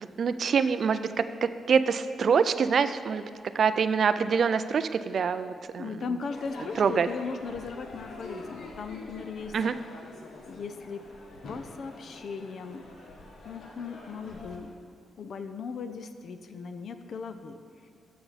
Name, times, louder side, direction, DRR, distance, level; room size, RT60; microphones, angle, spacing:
voice 1, 0.0-3.2 3.5-5.9 6.8-7.1 9.5-9.7, right 6 dB, 50° right, 12 dB, 0.3 m, -25 dB
voice 2, 5.8-9.6 10.5-11.0 11.5-12.9 13.4-14.7 15.2-17.6, left 5 dB, 55° left, 9 dB, 0.5 m, -37 dB
Crowd / Fireworks, 6.3-14.6, left 2 dB, 70° left, 1.3 m, -45 dB
14.0 x 5.9 x 4.1 m, 2.2 s
wide cardioid pair, 150°, 0 cm